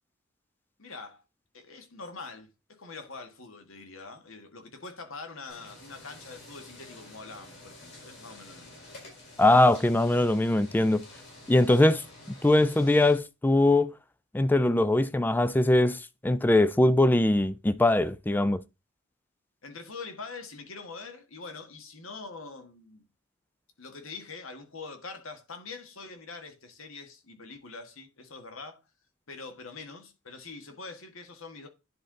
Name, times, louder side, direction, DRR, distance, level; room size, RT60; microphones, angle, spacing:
voice 1, 0.8-1.2 1.5-8.7 11.7-12.0 19.6-23.0 23.8-28.8 29.3-31.7, left 4 dB, 70° left, 1.5 m, -44 dB
sound 1, 5.5-13.2, left 2 dB, 55° left, 4.3 m, -49 dB
voice 2, 9.4-11.0 11.5-12.0 12.4-13.9 14.3-18.6, left 1 dB, 10° left, 0.3 m, -22 dB
10.5 x 3.9 x 3.8 m
head